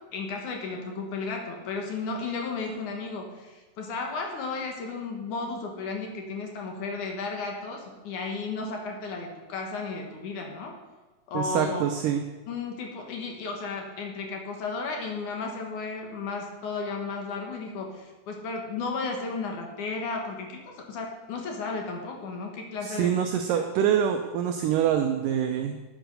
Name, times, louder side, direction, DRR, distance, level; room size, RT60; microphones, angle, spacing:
voice 1, 0.1-10.7 11.3-11.8 12.5-23.2 23.5-23.6, left 4 dB, 60° left, 1 dB, 2.5 m, -34 dB
voice 2, 11.3-12.2 22.8-25.8, right 9 dB, 75° right, 5 dB, 2.0 m, -25 dB
9.6 x 9.1 x 6.5 m, 1.2 s
omnidirectional pair, 4.4 m